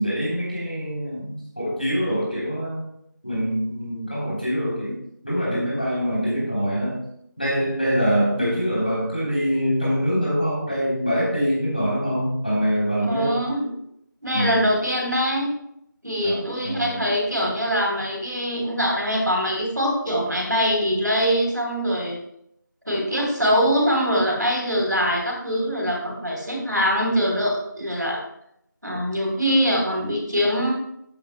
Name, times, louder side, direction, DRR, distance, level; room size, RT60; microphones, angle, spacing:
voice 1, 0.0-2.9 3.2-5.0 5.2-7.1 7.4-13.4 14.3-14.7 16.2-17.0, equal, 25° left, -6 dB, 3.4 m, -24 dB
voice 2, 13.1-13.8 14.2-15.5 16.0-22.2 22.9-28.2 28.8-30.7, equal, 65° right, -1 dB, 3.5 m, -23 dB
13.5 x 8.3 x 2.2 m, 0.74 s
figure-of-eight pair, 180°, 11 cm